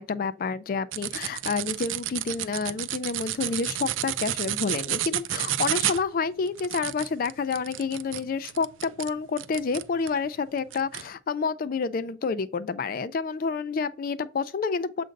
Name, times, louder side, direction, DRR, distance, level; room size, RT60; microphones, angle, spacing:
voice 1, 0.0-15.0, left 5 dB, 45° left, 0.3 m, -29 dB
sound 1, 0.9-10.2 10.7-11.1, right 13 dB, 90° right, 0.4 m, -31 dB
7.6 x 2.5 x 5.1 m
head